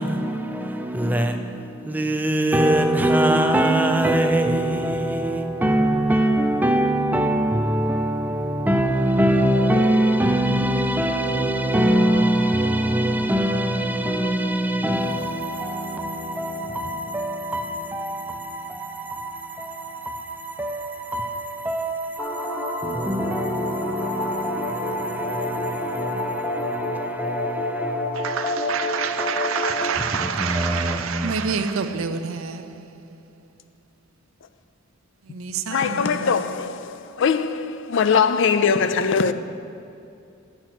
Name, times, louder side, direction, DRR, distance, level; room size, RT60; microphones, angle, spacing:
voice 1, 0.0-28.4 29.1-29.3 30.0-31.3, right 1 dB, 10° right, 0.4 m, -23 dB
sound 1, 22.2-30.0, left 1 dB, 15° left, 0.8 m, -28 dB
voice 2, 28.1-32.8 35.3-36.4, right 6 dB, 80° right, 0.6 m, -28 dB
voice 3, 35.7-36.9 37.2-39.3, left 6 dB, 60° left, 0.4 m, -21 dB
10.0 x 4.5 x 7.8 m
head